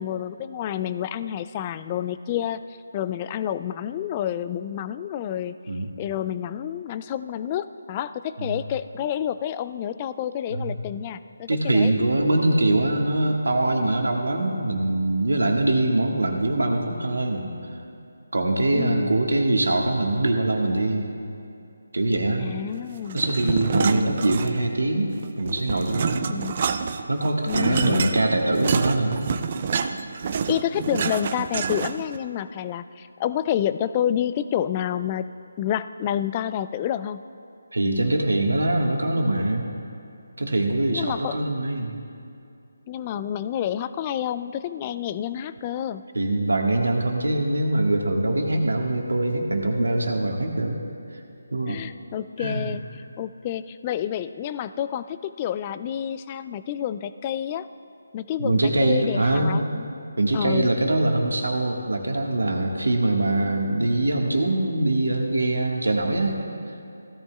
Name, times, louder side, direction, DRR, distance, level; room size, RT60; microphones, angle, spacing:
voice 1, 0.0-2.6 2.9-5.6 6.0-11.9 18.7-19.1 22.4-23.2 23.5-24.2 26.3-26.7 27.5-28.1 30.5-35.3 35.6-37.2 40.9-41.4 42.9-46.0 51.7-52.8 53.2-57.7 58.1-59.9 60.3-60.7, left 10 dB, 25° left, 13 dB, 0.3 m, -29 dB
voice 2, 11.5-17.5 18.3-21.1 21.9-22.5 23.1-25.1 25.4-26.3 27.1-29.3 37.7-39.6 40.4-41.9 46.1-50.8 51.5-51.8 52.4-52.8 58.4-59.6 60.2-66.4, right 2 dB, 80° right, 2 dB, 1.6 m, -23 dB
sound 1, 23.1-24.8 25.1-32.2, right 6 dB, 40° right, 0.5 m, -27 dB
16.5 x 13.0 x 2.4 m, 2.6 s
figure-of-eight pair, 155°, 0 cm